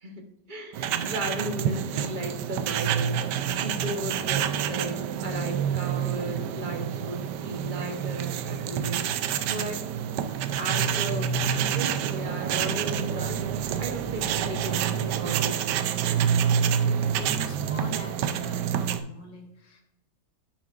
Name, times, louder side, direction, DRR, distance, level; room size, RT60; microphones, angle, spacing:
voice 1, 0.0-9.7 10.6-15.7, right 1 dB, 35° right, 4 dB, 0.8 m, -36 dB
sound 1, 0.7-19.0, right 8 dB, 80° right, 1.2 m, -28 dB
voice 2, 3.6-4.0 9.5-9.9 16.5-19.8, left 1 dB, 90° left, 2 dB, 2.1 m, -43 dB
10.5 x 7.2 x 2.5 m, 0.85 s
omnidirectional pair, 1.9 m